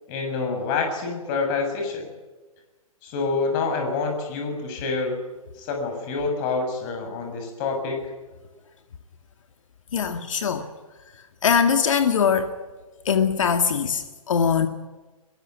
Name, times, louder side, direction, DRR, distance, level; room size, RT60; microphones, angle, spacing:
voice 1, 0.1-2.1 3.0-5.2 5.6-8.0, left 4 dB, 35° left, 3 dB, 6.9 m, -27 dB
voice 2, 9.9-10.7 11.4-12.5 13.1-14.7, left 7 dB, 60° left, 7 dB, 2.0 m, -21 dB
22.5 x 22.5 x 9.3 m, 1.2 s
figure-of-eight pair, 125°, 18 cm